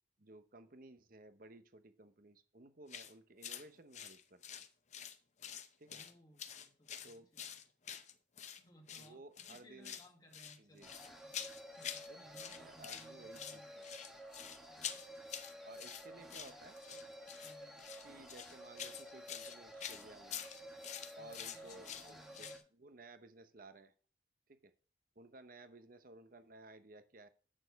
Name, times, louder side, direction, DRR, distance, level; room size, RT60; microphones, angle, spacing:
voice 1, 0.2-4.6 5.8-6.0 7.0-7.3 9.0-9.9 10.6-10.9 12.1-13.9 15.6-16.7 18.0-20.5 21.2-23.9 24.5-24.7 25.2-27.3, right 2 dB, 45° right, 11 dB, 0.9 m, -57 dB
sound 1, 2.9-3.1 3.4-3.6 3.9-5.2 5.4-6.1 6.4-8.6 8.9-9.1 9.4-10.1 10.3-12.1 12.3-13.1 13.3-22.6, left 9 dB, 35° left, 0.7 m, -47 dB
voice 2, 5.8-7.5 8.6-11.3 11.7-13.8 14.7-15.4 15.8-16.6 17.4-17.9 21.2-22.6, equal, 20° left, 2 dB, 1.6 m, -63 dB
sound 2, 10.8-22.6, equal, ahead, 1.4 m, -53 dB
8.9 x 6.8 x 4.6 m, 0.39 s
head